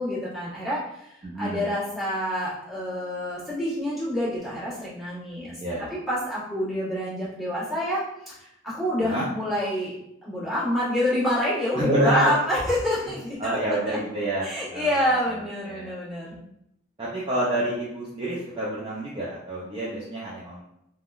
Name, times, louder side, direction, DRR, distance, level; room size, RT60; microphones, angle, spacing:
voice 1, 0.0-5.6 5.9-8.0 8.3-9.9 10.2-14.0 14.4-16.4, left 1 dB, ahead, -12 dB, 1.3 m, -27 dB
voice 2, 1.2-1.7 5.6-5.9 9.0-9.3 11.8-12.3 13.4-15.9 17.0-20.6, right 1 dB, 25° right, -7 dB, 0.4 m, -28 dB
3.5 x 2.2 x 2.4 m, 0.81 s
head